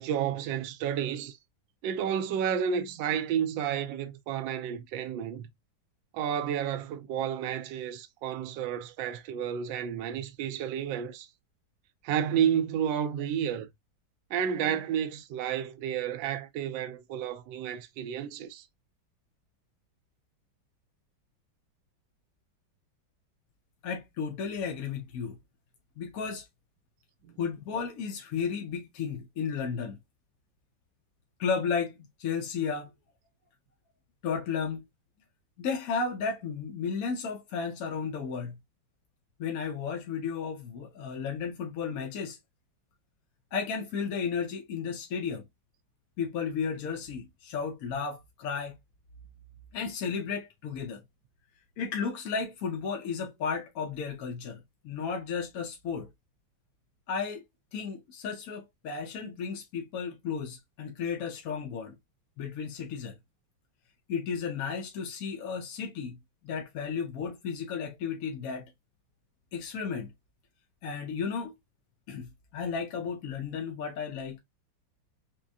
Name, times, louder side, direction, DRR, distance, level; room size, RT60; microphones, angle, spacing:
voice 1, 0.0-1.4 1.8-5.5 6.1-11.3 12.0-13.7 14.3-18.6 27.2-27.3, right 8 dB, 75° right, 1.3 m, -31 dB
voice 2, 23.8-25.4 26.0-26.5 27.4-30.0 31.4-32.9 34.2-34.8 35.6-38.5 39.4-42.4 43.5-45.5 46.2-48.7 49.7-51.0 51.8-56.1 57.1-57.4 57.7-61.9 62.4-63.2 64.1-66.2 66.4-68.7 69.5-70.1 70.8-71.5 72.1-74.4, left 6 dB, 65° left, 0.9 m, -33 dB
6.0 x 2.1 x 2.6 m
omnidirectional pair, 2.1 m